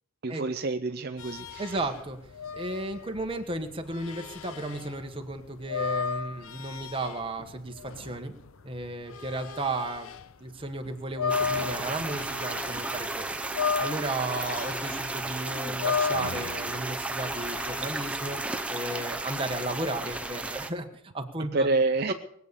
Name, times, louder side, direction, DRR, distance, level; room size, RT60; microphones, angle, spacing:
voice 1, 0.2-1.8 21.5-22.1, right 3 dB, 45° right, 8 dB, 0.5 m, -27 dB
sound 1, 1.2-10.3 10.7-13.1 13.4-17.8, left 5 dB, 70° left, 0.7 m, -34 dB
voice 2, 1.6-2.2 2.5-8.3 8.6-10.1 10.4-13.3 13.8-18.4 18.7-21.7 22.1-22.2, right 2 dB, 25° right, 5 dB, 1.4 m, -34 dB
sound 2, 11.3-20.7, right 2 dB, 5° right, 0.8 m, -34 dB
21.0 x 8.3 x 7.0 m, 0.71 s
head